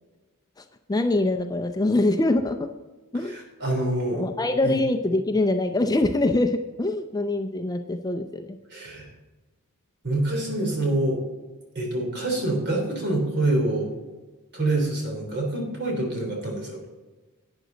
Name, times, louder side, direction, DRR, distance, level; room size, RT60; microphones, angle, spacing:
voice 1, 0.9-2.7 3.1-3.4 4.1-8.6, left 2 dB, 15° left, 6 dB, 0.5 m, -24 dB
voice 2, 3.3-4.3 4.6-4.8 8.7-9.1 10.0-11.2 11.8-13.9 14.5-16.8, right 2 dB, 50° right, 1 dB, 3.3 m, -26 dB
11.5 x 9.0 x 3.9 m, 1.2 s
head